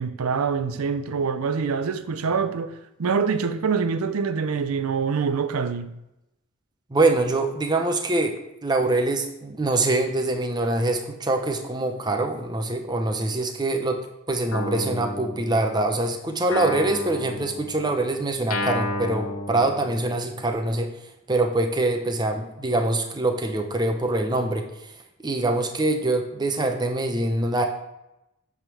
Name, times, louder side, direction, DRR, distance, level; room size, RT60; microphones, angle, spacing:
voice 1, 0.0-5.9, right 5 dB, 80° right, 0.5 m, -25 dB
voice 2, 6.9-8.4 8.6-20.9 21.3-24.7 25.2-27.6, right 2 dB, 20° right, 0.6 m, -24 dB
Guitar, 14.5-16.0 16.5-20.4, left 2 dB, 80° left, 1.2 m, -32 dB
8.8 x 3.6 x 6.2 m
head